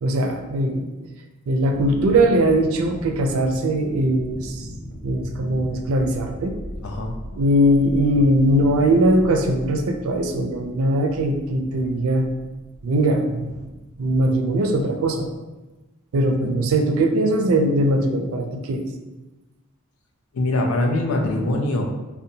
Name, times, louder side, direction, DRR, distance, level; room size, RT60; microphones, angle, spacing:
voice 1, 0.0-0.9 1.5-6.5 7.4-12.3 12.8-13.7 14.0-15.3 16.1-18.8, right 1 dB, 75° right, 4 dB, 0.4 m, -20 dB
sound 1, 1.7-15.3, equal, ahead, 0.6 m, -39 dB
voice 2, 6.8-7.4 20.3-21.9, left 1 dB, 85° left, 2 dB, 0.5 m, -23 dB
2.7 x 2.1 x 2.6 m, 1.1 s
head